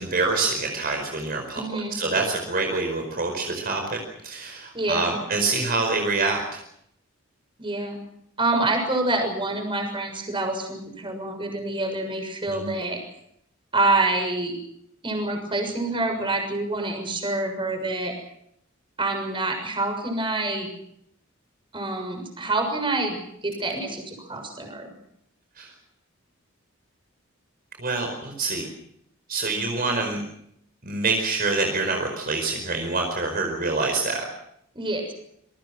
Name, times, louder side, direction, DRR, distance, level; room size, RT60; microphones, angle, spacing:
voice 1, 0.0-6.6 12.5-12.7 25.6-25.7 27.8-28.7 29.3-30.2 30.8-34.2, right 3 dB, 50° right, 3 dB, 4.8 m, -26 dB
voice 2, 1.5-2.0 4.7-5.1 7.6-8.0 8.4-13.0 13.7-14.6 15.0-18.1 19.0-20.7 21.7-23.2 23.4-24.9 34.7-35.1, right 2 dB, 25° right, 4 dB, 6.7 m, -26 dB
27.5 x 22.5 x 6.1 m, 0.73 s
head